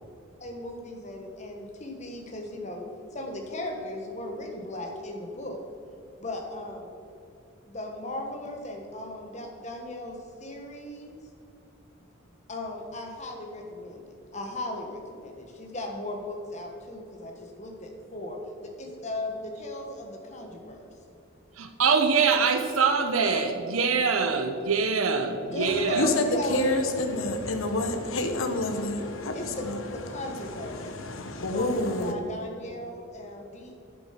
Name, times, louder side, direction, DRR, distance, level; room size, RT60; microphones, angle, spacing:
voice 1, 0.4-5.6 6.2-6.9 7.7-11.2 12.5-18.4 18.6-20.9 25.5-26.8 29.3-29.7 29.9-30.8 31.5-33.8, left 1 dB, 35° left, 1.3 m, -37 dB
voice 2, 21.6-26.1, right 5 dB, 80° right, 0.8 m, -24 dB
voice 3, 25.6-32.2, left 2 dB, 75° left, 1.0 m, -29 dB
9.2 x 7.0 x 5.8 m
head